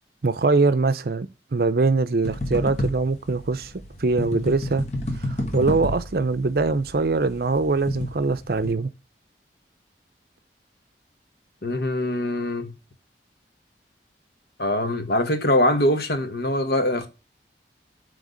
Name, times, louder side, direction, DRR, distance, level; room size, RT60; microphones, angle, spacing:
voice 1, 0.2-3.7 4.0-4.8 5.2-8.9, right 3 dB, 55° right, 0.6 m, -22 dB
sound 1, 2.2-8.7, left 1 dB, 40° left, 1.2 m, -31 dB
voice 2, 11.6-12.7 14.6-17.1, left 1 dB, 60° left, 1.2 m, -23 dB
7.9 x 3.4 x 5.1 m
head